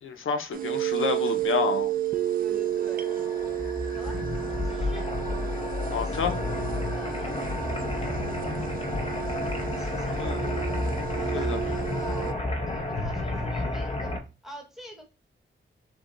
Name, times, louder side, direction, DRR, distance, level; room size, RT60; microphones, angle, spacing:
voice 1, 0.0-1.9 5.9-6.3 10.0-10.5 11.3-11.6, left 6 dB, 85° left, 0.7 m, -29 dB
sound 1, 0.5-12.3, right 11 dB, 45° right, 0.4 m, -31 dB
voice 2, 2.4-3.1 3.9-5.1 5.9-7.4 9.6-10.2 11.1-14.2 14.4-15.0, equal, ahead, 1.1 m, -45 dB
sound 2, 2.6-14.2, left 2 dB, 30° left, 0.8 m, -31 dB
5.9 x 2.2 x 3.8 m
wide cardioid pair, 170°, 20 cm